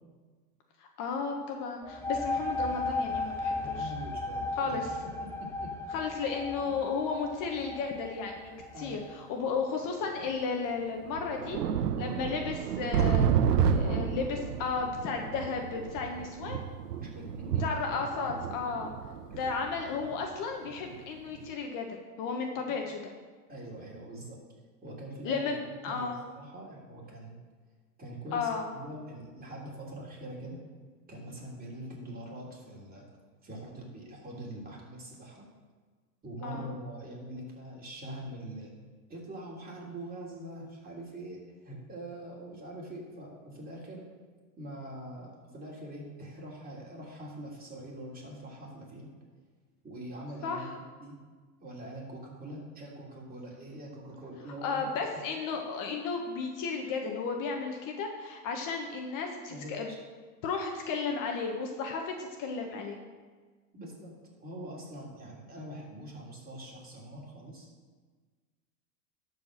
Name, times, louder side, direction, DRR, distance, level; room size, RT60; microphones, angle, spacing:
voice 1, 0.8-3.9 4.6-4.9 5.9-8.5 8.8-11.6 12.0-13.3 13.6-16.6 17.6-18.9 19.3-23.1 25.2-25.6 25.8-26.2 28.3-28.7 36.4-36.7 50.4-50.7 54.6-59.9 60.4-63.0, left 5 dB, 45° left, 2 dB, 1.4 m, -34 dB
sound 1, 1.8-9.3, left 2 dB, 5° left, 1.1 m, -35 dB
voice 2, 3.6-6.1 6.6-6.8 8.7-9.1 13.2-14.0 15.1-15.3 17.0-17.6 19.3-19.4 22.7-22.8 23.5-24.4 24.8-25.5 25.8-27.4 28.0-30.6 31.1-33.0 33.4-35.5 36.2-38.7 39.1-44.1 44.6-49.1 49.8-51.2 51.6-54.8 59.5-60.0 63.7-67.7, right 1 dB, 20° right, -3 dB, 3.5 m, -43 dB
sound 2, 7.5-7.6 8.6-8.7 9.8-9.9 10.3-10.4 10.9-21.0 21.3-21.5, right 7 dB, 85° right, 0.9 m, -31 dB
12.5 x 4.8 x 6.6 m, 1.4 s
hypercardioid pair, 115°, 47 cm